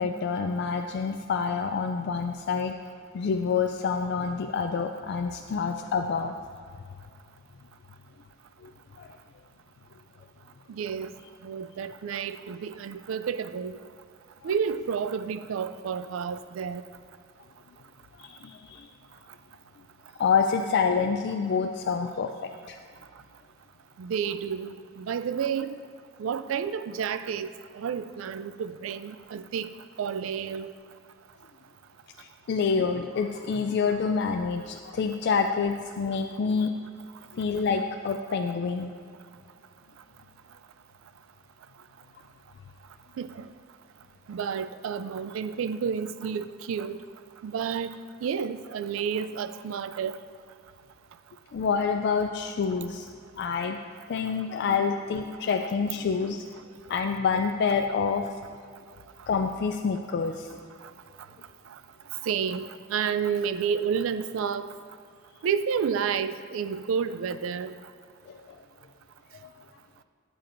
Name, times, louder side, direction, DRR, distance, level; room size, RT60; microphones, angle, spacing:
voice 1, 0.0-2.8 3.1-6.4 8.6-8.7 9.0-9.1 18.2-18.9 20.2-22.8 32.2-36.8 37.3-38.9 51.5-53.1 53.4-53.8 54.1-56.4 56.9-58.3 59.3-60.5 68.3-68.6 69.4-69.5, left 5 dB, 55° left, 4 dB, 0.3 m, -27 dB
voice 2, 10.7-11.1 11.4-13.8 14.4-16.8 24.0-25.8 26.2-27.5 27.7-29.7 30.0-30.7 43.2-43.5 44.3-47.0 47.4-47.9 48.2-50.2 62.2-64.7 65.4-67.7, right 7 dB, 85° right, 12 dB, 0.3 m, -30 dB
12.5 x 7.7 x 2.6 m, 2.3 s
head